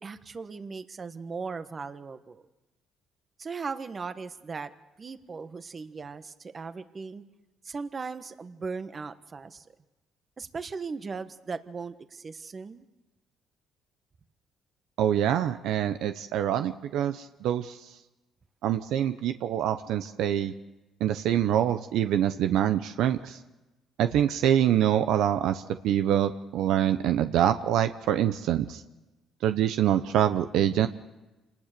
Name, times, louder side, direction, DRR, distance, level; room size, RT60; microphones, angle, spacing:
voice 1, 0.0-2.4 3.4-4.7 5.0-7.2 7.6-9.7 10.4-12.9, right 4 dB, 35° right, 10 dB, 1.4 m, -38 dB
voice 2, 15.0-17.8 18.6-20.5 21.0-23.4 24.0-28.8 29.4-30.9, right 10 dB, 75° right, 9 dB, 0.8 m, -25 dB
27.0 x 19.5 x 6.8 m, 1.1 s
cardioid pair, 85°, 0 cm